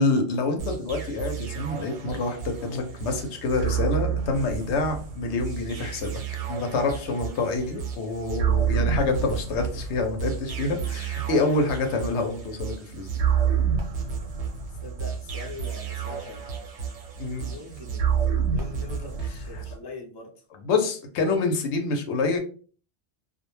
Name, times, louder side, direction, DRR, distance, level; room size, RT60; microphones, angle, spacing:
voice 1, 0.0-6.1 6.5-13.1 17.2-17.5 20.6-22.4, left 3 dB, 75° left, 4 dB, 0.9 m, -27 dB
sound 1, 0.6-19.8, right 7 dB, 85° right, 1.0 m, -29 dB
voice 2, 14.7-16.5 17.3-18.1 18.5-20.4, left 3 dB, 40° left, 1 dB, 0.4 m, -42 dB
2.3 x 2.1 x 3.0 m, 0.41 s
omnidirectional pair, 1.2 m